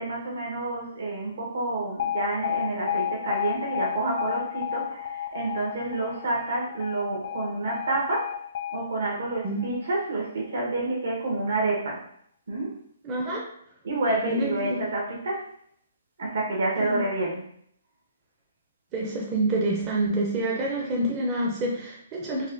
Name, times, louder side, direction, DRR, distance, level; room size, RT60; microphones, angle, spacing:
voice 1, 0.0-8.3 8.7-12.0 12.5-12.8 13.8-15.5 16.2-17.4, right 2 dB, 70° right, -2 dB, 1.1 m, -29 dB
Alarm, 2.0-10.0, left 10 dB, 45° left, 0.3 m, -32 dB
voice 2, 13.0-13.4 14.2-14.8 16.8-17.0 18.9-22.5, right 1 dB, 20° right, -3 dB, 0.5 m, -27 dB
4.0 x 2.1 x 2.6 m, 0.67 s
hypercardioid pair, 165°, 0 cm